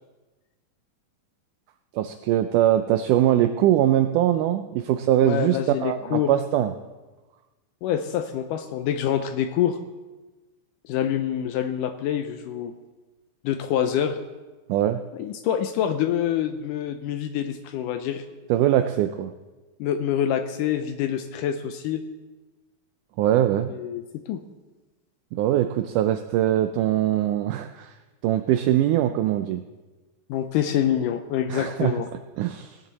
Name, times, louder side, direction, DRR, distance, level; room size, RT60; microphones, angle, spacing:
voice 1, 1.9-6.7 14.7-15.0 18.5-19.3 23.2-23.7 25.3-27.9 28.2-29.6 31.5-32.0 32.4-32.8, right 12 dB, 85° right, 9 dB, 1.8 m, -22 dB
voice 2, 5.2-6.3 7.8-9.8 10.8-12.7 13.4-14.2 15.1-18.2 19.8-22.0 23.7-24.4 30.3-32.1, left 10 dB, 80° left, 8 dB, 2.0 m, -26 dB
18.5 x 10.5 x 4.0 m, 1.2 s
omnidirectional pair, 4.2 m